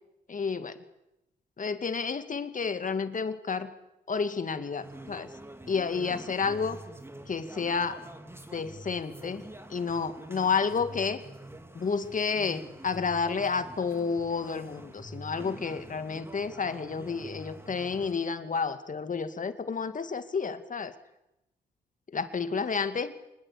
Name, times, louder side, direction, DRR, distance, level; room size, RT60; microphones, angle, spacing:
voice 1, 0.3-0.8 1.6-3.7 4.1-5.3 5.7-6.8 7.3-8.0 8.5-9.4 9.7-11.2 11.7-20.9 22.1-23.1, left 5 dB, 45° left, 10 dB, 2.3 m, -30 dB
sound 1, 4.8-18.1, right 1 dB, 15° right, 3.3 m, -46 dB
26.0 x 20.0 x 8.6 m, 0.91 s
supercardioid pair, 55°, 18 cm